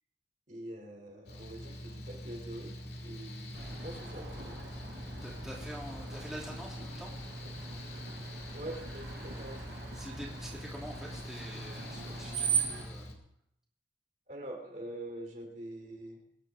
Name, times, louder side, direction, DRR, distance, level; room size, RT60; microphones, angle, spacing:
voice 1, 0.5-2.7 3.0-4.6 8.5-9.7 14.3-16.2, right 1 dB, 45° right, 2 dB, 2.9 m, -44 dB
Mechanical fan, 1.3-13.2, equal, 65° left, 2.2 m, -44 dB
Screech, 3.5-12.8, right 6 dB, 85° right, 5.1 m, -40 dB
voice 2, 5.2-7.1 9.9-13.2, equal, ahead, -4 dB, 2.7 m, -46 dB
23.5 x 10.5 x 3.6 m, 0.73 s
head